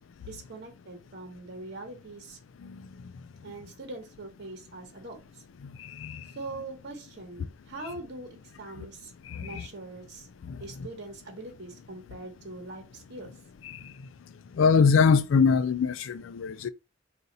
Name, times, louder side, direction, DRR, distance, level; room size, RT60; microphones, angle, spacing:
voice 1, 0.2-2.4 3.4-5.4 6.3-9.1 9.4-10.3 10.6-13.3, right 2 dB, 60° right, 1.1 m, -42 dB
voice 2, 5.8-6.3 8.8-8.9 9.3-9.7 10.4-10.9 13.6-13.9 14.5-16.7, left 5 dB, 80° left, 0.4 m, -24 dB
4.1 x 2.5 x 3.9 m
head